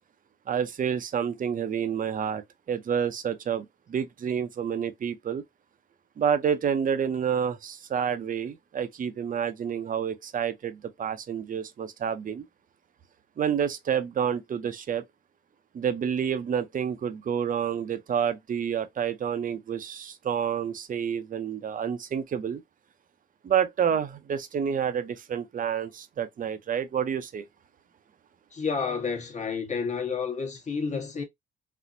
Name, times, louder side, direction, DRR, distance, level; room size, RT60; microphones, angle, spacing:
voice 1, 0.5-2.4 2.7-5.4 6.2-12.4 13.4-15.0 15.7-22.6 23.4-27.4, right 8 dB, 45° right, 0.6 m, -29 dB
voice 2, 28.5-31.2, left 5 dB, 35° left, 1.1 m, -30 dB
4.2 x 2.1 x 2.6 m
cardioid pair, 90°, 20 cm